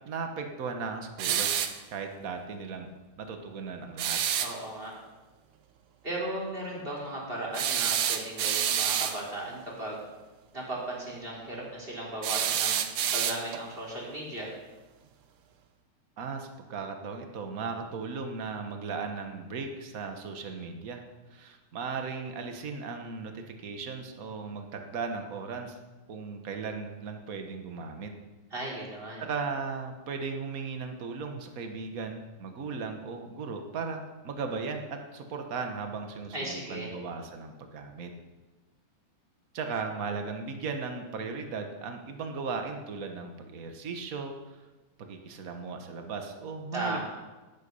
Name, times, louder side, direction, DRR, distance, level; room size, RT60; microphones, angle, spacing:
voice 1, 0.0-1.5 1.9-2.9 3.2-4.2 16.2-21.0 21.3-25.8 26.1-28.1 29.2-38.1 39.5-44.6 45.0-47.1, right 4 dB, 60° right, 5 dB, 0.8 m, -37 dB
sound 1, 1.2-1.8 4.0-4.5 7.5-9.2 12.2-13.7, right 9 dB, 80° right, 1.2 m, -28 dB
voice 2, 4.4-4.9 6.0-10.0 10.5-12.9 13.1-14.5 28.5-29.2 36.3-36.9 46.7-47.1, right 1 dB, 15° right, -4 dB, 3.7 m, -36 dB
18.0 x 9.4 x 5.5 m, 1.2 s
omnidirectional pair, 3.6 m